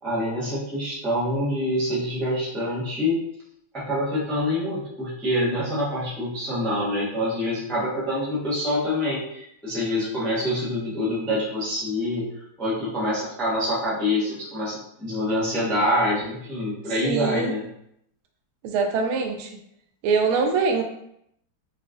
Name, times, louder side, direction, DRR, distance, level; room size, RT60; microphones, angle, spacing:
voice 1, 0.0-3.2 3.7-12.2 12.6-17.6, left 1 dB, ahead, -9 dB, 0.4 m, -26 dB
voice 2, 17.0-17.5 18.6-19.5 20.0-20.8, right 5 dB, 85° right, 3 dB, 1.4 m, -23 dB
3.9 x 2.3 x 2.4 m, 0.73 s
omnidirectional pair, 2.2 m